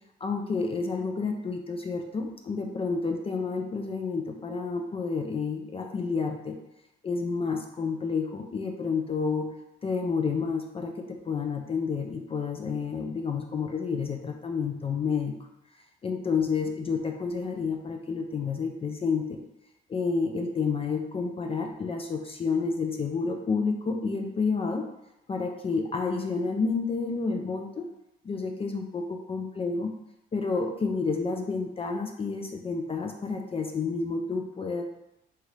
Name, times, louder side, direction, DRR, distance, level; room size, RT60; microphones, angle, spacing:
voice 1, 0.2-6.5 7.0-9.5 9.8-10.9 11.3-15.3 16.0-19.4 19.9-24.8 25.3-27.8 28.2-29.9 30.3-34.8, left 4 dB, 30° left, 3 dB, 0.3 m, -30 dB
2.9 x 2.3 x 3.1 m, 0.90 s
cardioid pair, 90°, 20 cm